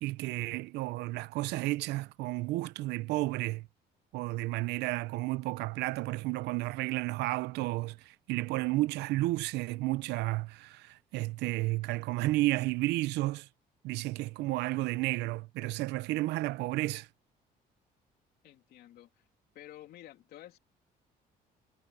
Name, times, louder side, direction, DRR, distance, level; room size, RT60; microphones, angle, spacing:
voice 1, 0.0-3.7 4.1-13.5 13.8-17.1, right 19 dB, 90° right, 0.7 m, -32 dB
voice 2, 18.4-19.3 19.5-20.6, left 13 dB, 70° left, 3.2 m, -51 dB
cardioid pair, 110°, 17 cm